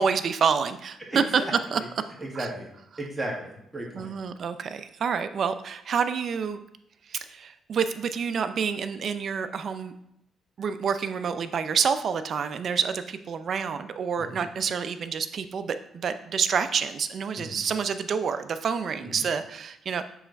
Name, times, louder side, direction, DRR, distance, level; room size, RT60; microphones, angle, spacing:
voice 1, 0.0-1.2 1.7-1.8 2.3-2.5 3.9-6.6 7.1-9.9 10.6-20.0, right 6 dB, 55° right, 10 dB, 0.4 m, -28 dB
voice 2, 1.1-1.9 2.2-2.6 3.0-4.1 14.2-14.5 17.4-17.6 19.0-19.3, right 1 dB, 15° right, -2 dB, 1.7 m, -35 dB
7.1 x 3.3 x 4.0 m, 0.78 s
cardioid pair, 90°, 0 cm